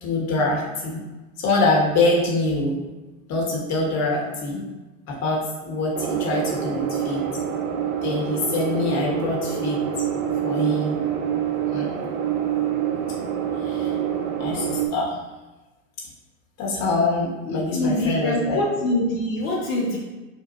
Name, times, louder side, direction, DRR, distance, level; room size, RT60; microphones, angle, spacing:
voice 1, 0.0-1.0 1.4-2.8 3.3-4.6 5.1-7.3 8.0-9.8 10.4-10.9 11.7-11.9 13.6-13.9 14.4-15.2 16.6-18.6, left 2 dB, 40° left, -4 dB, 1.1 m, -24 dB
sound 1, 5.9-14.9, right 9 dB, 85° right, 0.5 m, -26 dB
voice 2, 17.5-20.0, left 1 dB, 75° left, -4 dB, 0.8 m, -24 dB
2.6 x 2.2 x 3.8 m, 1.1 s
hypercardioid pair, 90°, 41 cm